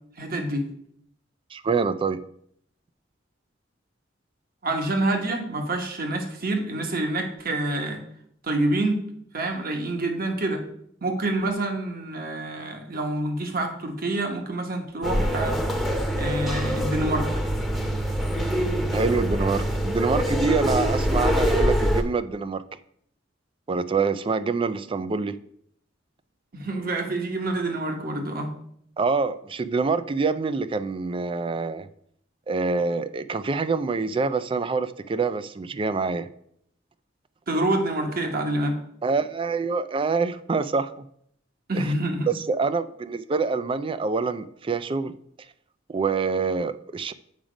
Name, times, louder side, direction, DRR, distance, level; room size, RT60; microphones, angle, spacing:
voice 1, 0.2-0.8 4.6-8.0 8.4-9.0 9.3-10.6 11.0-15.6 16.1-17.3 26.5-28.5 37.5-38.8 41.7-42.3, right 2 dB, 50° right, 4 dB, 1.2 m, -27 dB
voice 2, 1.5-2.2 18.9-22.6 23.7-25.4 29.0-31.9 32.5-36.3 39.0-41.1 41.7-41.9 42.3-45.2 45.9-47.1, right 4 dB, 30° right, 13 dB, 0.3 m, -26 dB
sound 1, 15.0-22.0, equal, ahead, 0.8 m, -24 dB
7.3 x 5.0 x 5.1 m, 0.68 s
head